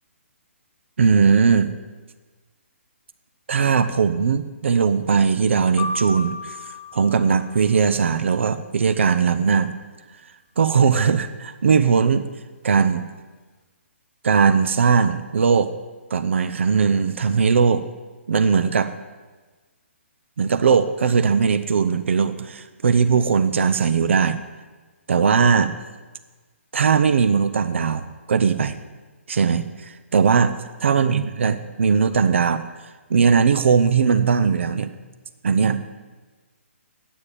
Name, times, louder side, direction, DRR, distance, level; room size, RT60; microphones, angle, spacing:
voice 1, 1.0-1.7 3.5-6.6 6.9-9.7 10.6-12.3 12.6-13.0 14.2-15.7 16.1-17.9 18.3-18.9 20.4-24.4 25.1-25.7 26.7-28.8 29.3-32.6 33.1-34.9 35.4-35.8, right 6 dB, 60° right, 12 dB, 0.6 m, -19 dB
sound 1, 5.8-7.9, left 2 dB, 20° left, 1.9 m, -33 dB
9.6 x 8.6 x 8.9 m, 1.3 s
figure-of-eight pair, 135°, 7 cm